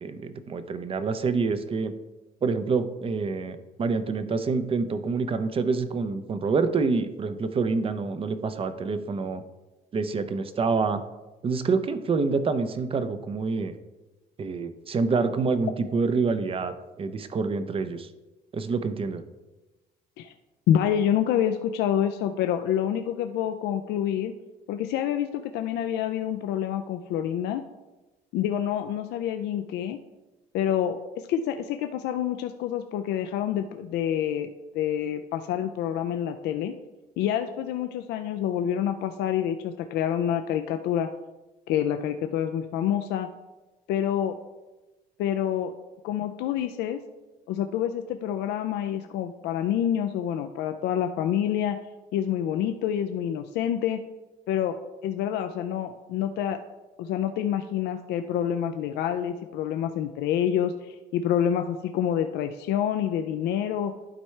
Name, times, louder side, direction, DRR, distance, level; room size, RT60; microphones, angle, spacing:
voice 1, 0.0-1.9 2.4-9.4 9.9-11.0 11.4-13.7 14.4-18.1 18.5-19.2, right 4 dB, 35° right, 11 dB, 0.6 m, -27 dB
voice 2, 20.7-24.3 24.7-27.6 28.3-30.0 30.5-36.7 37.2-41.1 41.7-43.3 43.9-44.4 45.2-45.7 46.0-47.0 47.5-51.8 52.1-54.0 54.5-56.6 57.0-63.9, left 10 dB, 80° left, 7 dB, 0.5 m, -27 dB
11.5 x 4.5 x 3.3 m, 1.1 s
cardioid pair, 110°, 17 cm